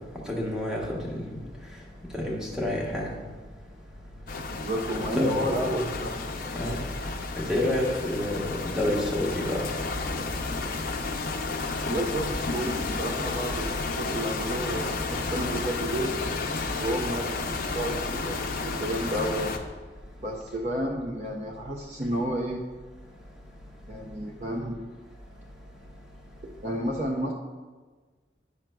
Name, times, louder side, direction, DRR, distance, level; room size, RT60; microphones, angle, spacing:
voice 1, 0.3-1.4 2.1-3.1 5.1-5.9 6.5-6.8 7.4-9.6, left 1 dB, 5° right, -3 dB, 1.1 m, -29 dB
sound 1, 4.3-19.6, left 3 dB, 50° left, 0.5 m, -32 dB
voice 2, 4.5-6.1 11.8-13.7 14.0-16.1 16.8-19.6 20.2-22.6 23.9-25.0 26.6-27.3, right 1 dB, 40° right, 1 dB, 0.5 m, -31 dB
9.7 x 5.9 x 2.3 m, 1.4 s
head